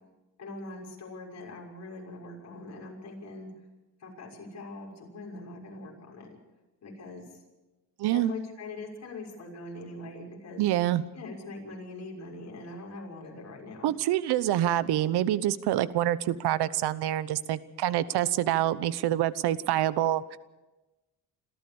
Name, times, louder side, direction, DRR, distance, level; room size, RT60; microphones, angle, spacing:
voice 1, 0.4-3.5 4.0-6.3 6.8-7.3 8.1-10.6 11.1-13.9, left 2 dB, 40° left, 0 dB, 6.4 m, -42 dB
voice 2, 8.0-8.3 10.6-11.0 13.8-20.4, right 13 dB, 75° right, 17 dB, 1.0 m, -26 dB
27.0 x 14.5 x 7.1 m, 1.1 s
cardioid pair, 115°, 39 cm